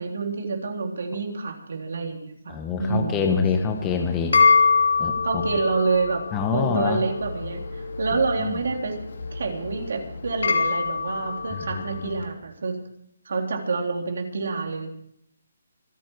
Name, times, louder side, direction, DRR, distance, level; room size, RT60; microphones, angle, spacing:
voice 1, 0.0-3.2 5.2-6.2 6.5-8.9 9.3-12.8 13.3-14.9, right 4 dB, 60° right, 2 dB, 3.7 m, -28 dB
voice 2, 2.5-4.3 5.0-5.4 6.3-7.0 8.4-8.6 11.5-12.1, left 6 dB, 10° left, 3 dB, 1.0 m, -26 dB
sound 1, 3.7-12.2, left 4 dB, 70° left, 2.8 m, -25 dB
26.5 x 10.0 x 4.8 m, 0.72 s
hypercardioid pair, 175°, 0 cm